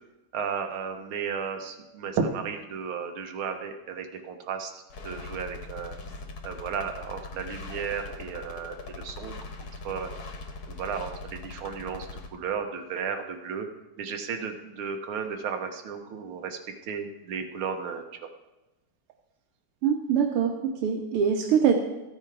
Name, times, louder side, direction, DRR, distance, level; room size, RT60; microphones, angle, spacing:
voice 1, 0.3-4.7 5.0-6.0 6.4-9.4 9.8-10.1 10.7-13.7 14.0-18.0, right 6 dB, 75° right, 5 dB, 1.9 m, -34 dB
sound 1, 4.9-12.3, left 3 dB, 55° left, 1.4 m, -41 dB
voice 2, 19.8-21.7, right 7 dB, 90° right, 2 dB, 1.8 m, -24 dB
14.0 x 8.7 x 4.6 m, 1.0 s
omnidirectional pair, 2.4 m